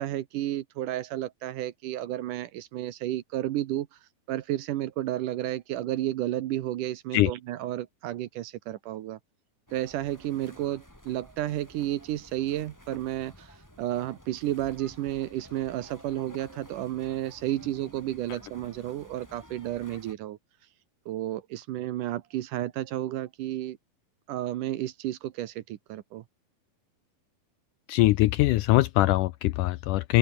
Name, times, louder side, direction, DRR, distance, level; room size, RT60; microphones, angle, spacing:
voice 1, 0.0-3.9 4.3-9.2 9.7-20.4 21.1-23.8 24.3-26.2, right 13 dB, 70° right, 2.4 m, -32 dB
sound 1, 9.7-20.1, equal, 5° left, 6.0 m, -52 dB
voice 2, 27.9-30.2, left 18 dB, 80° left, 1.9 m, -22 dB
open air
omnidirectional pair, 4.1 m